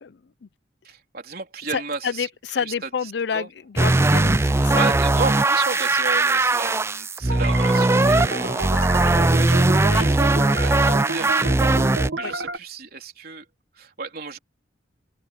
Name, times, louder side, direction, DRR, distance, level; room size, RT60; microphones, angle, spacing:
voice 1, 0.0-0.5 1.7-4.8 9.8-10.1 12.2-12.3, left 6 dB, 65° left, 0.5 m, -29 dB
voice 2, 0.8-3.5 4.6-13.5 13.7-14.4, right 4 dB, 55° right, 3.8 m, -34 dB
sound 1, 3.8-12.1, right 2 dB, 15° right, 0.4 m, -19 dB
sound 2, 7.3-12.6, right 3 dB, 75° right, 1.7 m, -30 dB
head